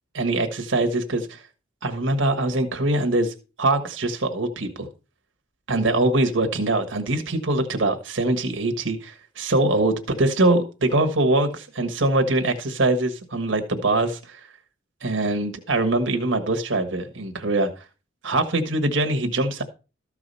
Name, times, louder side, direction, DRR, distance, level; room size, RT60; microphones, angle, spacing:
voice 1, 0.1-1.4 1.8-4.9 5.7-14.5 15.0-17.8 18.2-19.6, right 2 dB, 75° right, 6 dB, 1.5 m, -23 dB
13.5 x 4.8 x 5.5 m, 0.32 s
head